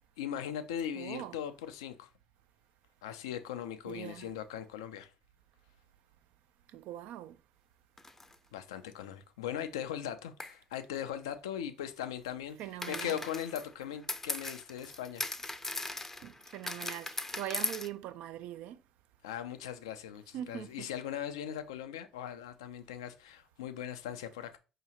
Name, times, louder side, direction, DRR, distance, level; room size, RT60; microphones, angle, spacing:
voice 1, 0.2-2.1 3.0-5.1 8.5-12.6 12.9-15.3 19.2-24.6, left 9 dB, 85° left, 0.4 m, -39 dB
voice 2, 1.0-1.4 3.9-4.3 6.7-7.4 12.6-13.2 16.2-18.8 20.3-20.9, right 12 dB, 65° right, 0.3 m, -42 dB
sound 1, 8.0-8.3 10.4-10.5 12.8-17.9, left 2 dB, 15° left, 0.5 m, -38 dB
4.8 x 2.9 x 2.8 m
hypercardioid pair, 65°, 2 cm